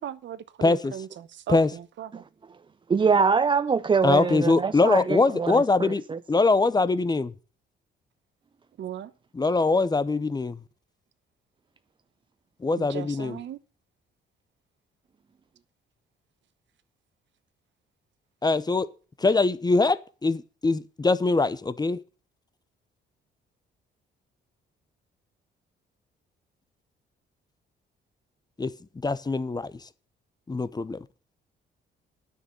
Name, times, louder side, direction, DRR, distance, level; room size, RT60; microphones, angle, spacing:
voice 1, 0.0-2.2 8.8-9.1 12.8-13.6, right 10 dB, 65° right, 1.0 m, -38 dB
voice 2, 0.6-0.9 1.5-1.7 4.0-7.3 9.4-10.6 12.6-13.4 18.4-18.9 19.2-22.0 28.6-28.7 29.0-29.7 30.5-31.0, left 3 dB, 20° left, 0.7 m, -23 dB
voice 3, 2.9-6.2, right 5 dB, 25° right, 0.4 m, -24 dB
9.5 x 6.6 x 7.7 m
cardioid pair, 90°, 20 cm